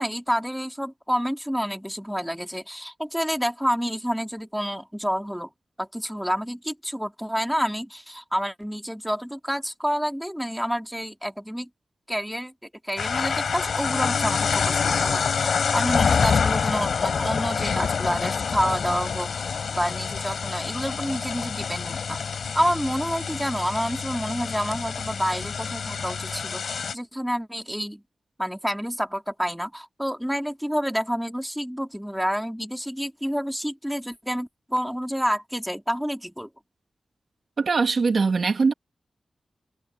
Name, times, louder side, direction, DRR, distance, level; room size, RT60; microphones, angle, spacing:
voice 1, 0.0-5.5 5.8-11.7 12.1-12.5 12.8-22.2 22.5-28.0 28.4-36.5, equal, ahead, 2.7 m, -28 dB
sound 1, 13.0-26.9, left 6 dB, 85° left, 5.7 m, -26 dB
voice 2, 37.6-38.7, right 4 dB, 60° right, 2.8 m, -21 dB
wide cardioid pair, 95°, 0 cm